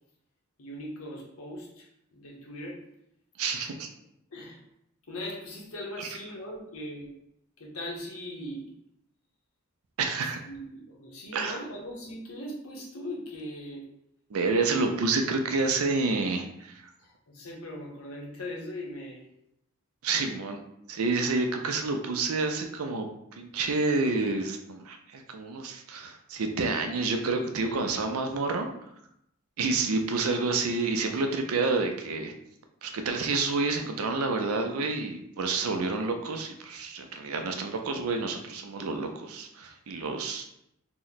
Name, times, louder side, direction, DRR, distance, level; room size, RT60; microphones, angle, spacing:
voice 1, 0.6-2.9 3.6-3.7 4.3-4.6 5.1-7.2 7.6-8.8 10.5-13.9 17.0-19.2, left 1 dB, 85° left, -1 dB, 0.8 m, -40 dB
voice 2, 3.4-3.9 6.0-6.1 10.0-10.4 11.3-11.6 14.3-16.8 20.0-20.6 20.9-28.7 29.6-32.3 32.8-40.4, right 3 dB, 85° right, 5 dB, 0.5 m, -29 dB
2.9 x 2.1 x 3.9 m, 0.77 s
head